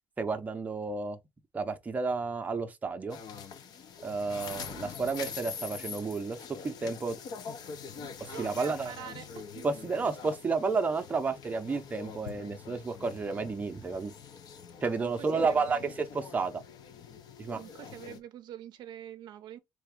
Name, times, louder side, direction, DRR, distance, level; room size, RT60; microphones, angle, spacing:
voice 1, 0.2-1.2 1.5-3.2 4.0-7.2 8.2-8.9 9.6-14.1 14.8-16.6 17.4-17.6, right 4 dB, 20° right, 0.6 m, -31 dB
sound 1, 3.1-18.2, left 6 dB, 50° left, 0.8 m, -44 dB
voice 2, 8.0-9.7 15.0-15.9 17.5-19.6, right 11 dB, 60° right, 0.5 m, -45 dB
3.9 x 3.3 x 3.6 m
cardioid pair, 135°, 8 cm